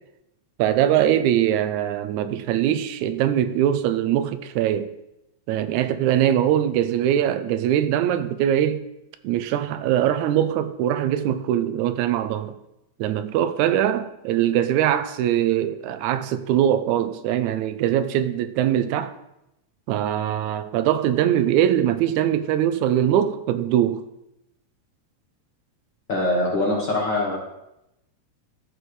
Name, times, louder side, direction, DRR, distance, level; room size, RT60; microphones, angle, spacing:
voice 1, 0.6-4.9 5.5-8.8 9.2-12.6 13.0-19.1 19.9-24.0, right 11 dB, 85° right, 1.9 m, -22 dB
voice 2, 26.1-27.4, left 1 dB, 50° left, 1.4 m, -23 dB
13.0 x 4.8 x 3.2 m
omnidirectional pair, 3.4 m